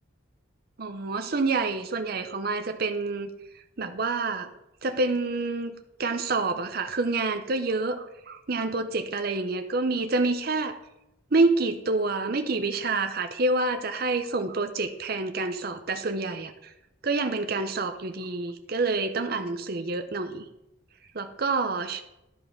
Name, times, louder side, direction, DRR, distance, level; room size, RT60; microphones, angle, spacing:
voice 1, 0.8-3.3 3.8-4.5 4.8-5.7 6.0-10.8 11.3-16.7 17.0-20.5 21.1-22.0, right 3 dB, 45° right, 7 dB, 0.7 m, -27 dB
11.5 x 5.6 x 5.8 m, 0.88 s
head